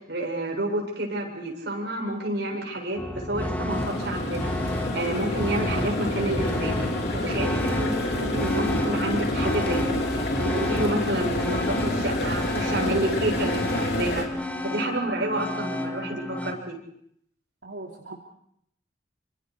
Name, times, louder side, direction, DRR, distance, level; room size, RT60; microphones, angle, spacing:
voice 1, 0.1-6.8 7.2-7.9 8.2-10.0 10.4-14.2 14.6-16.7, right 1 dB, 65° right, 1 dB, 7.5 m, -29 dB
sound 1, 3.0-16.5, left 1 dB, 10° left, 2.2 m, -31 dB
sound 2, 3.7-14.2, left 1 dB, 60° left, 3.9 m, -29 dB
voice 2, 17.6-18.1, right 2 dB, 85° right, -1 dB, 3.1 m, -39 dB
29.0 x 26.5 x 4.9 m, 0.71 s
head